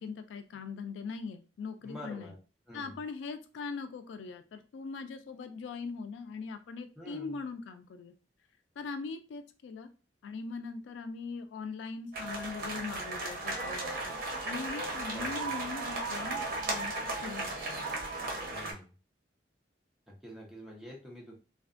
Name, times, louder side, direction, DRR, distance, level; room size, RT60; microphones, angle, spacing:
voice 1, 0.0-2.3 2.7-8.1 8.8-9.9 10.2-14.1 14.4-17.0 17.2-17.9, left 4 dB, 80° left, 9 dB, 0.3 m, -41 dB
voice 2, 1.8-2.4 2.7-3.0 7.0-7.4 15.1-15.5 18.5-18.9 20.1-21.3, equal, ahead, -3 dB, 0.8 m, -47 dB
sound 1, 12.1-18.7, right 2 dB, 50° right, 0.7 m, -35 dB
2.4 x 2.3 x 2.4 m, 0.34 s
head